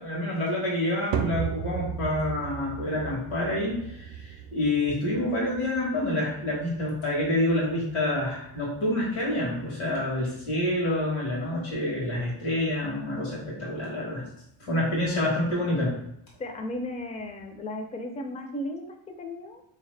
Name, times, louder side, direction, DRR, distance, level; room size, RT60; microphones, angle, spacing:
voice 1, 0.0-14.2 14.6-15.9, left 1 dB, 90° left, -4 dB, 1.4 m, -27 dB
sound 1, 1.1-17.6, right 8 dB, 65° right, 0.6 m, -39 dB
voice 2, 16.4-19.6, left 1 dB, 15° left, 4 dB, 0.4 m, -35 dB
3.7 x 2.8 x 3.2 m, 0.77 s
cardioid pair, 115°, 47 cm